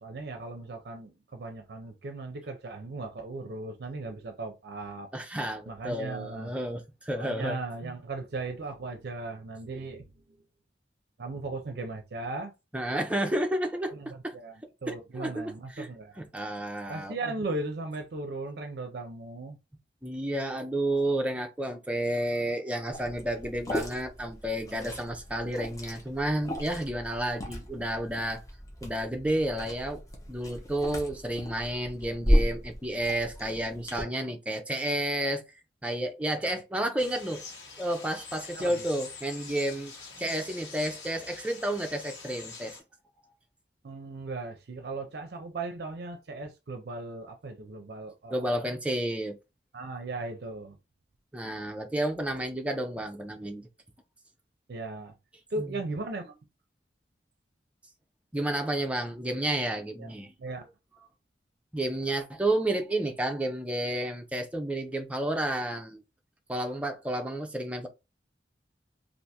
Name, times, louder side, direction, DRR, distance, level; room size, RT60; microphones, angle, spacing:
voice 1, 0.0-5.1 5.7-6.6 7.1-10.1 11.2-12.5 13.9-16.2 16.9-19.6 38.5-38.8 43.8-48.7 49.7-50.8 54.7-55.1 55.5-56.4 60.0-60.1 60.4-60.7, right 3 dB, 60° right, 0.5 m, -37 dB
voice 2, 5.1-7.9 12.7-13.9 14.2-14.3 14.9-15.9 16.2-17.3 20.0-28.4 28.8-30.0 30.3-35.4 35.8-37.4 37.8-42.8 43.2-43.3 48.3-49.4 51.3-53.7 55.6-56.0 58.3-60.3 61.7-66.0 66.5-67.9, right 1 dB, 5° right, 0.5 m, -31 dB
Liquid, 22.9-34.0, equal, 20° left, 0.8 m, -33 dB
sound 1, 37.0-42.8, left 4 dB, 70° left, 1.3 m, -45 dB
3.3 x 2.5 x 2.8 m
head